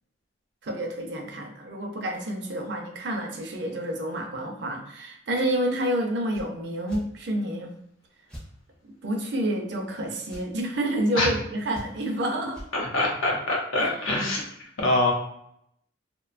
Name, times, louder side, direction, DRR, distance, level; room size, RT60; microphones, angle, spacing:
voice 1, 0.6-7.7 8.8-12.6 13.8-13.9, right 1 dB, 60° right, 2 dB, 0.4 m, -29 dB
sound 1, 6.3-6.5 6.9-7.1 8.3-8.5 10.3-10.5 11.7-12.1 12.5-12.7, equal, 5° left, 0.4 m, -41 dB
voice 2, 12.7-14.4 14.8-15.1, left 2 dB, 85° left, -1 dB, 0.7 m, -24 dB
2.5 x 2.1 x 2.4 m, 0.73 s
head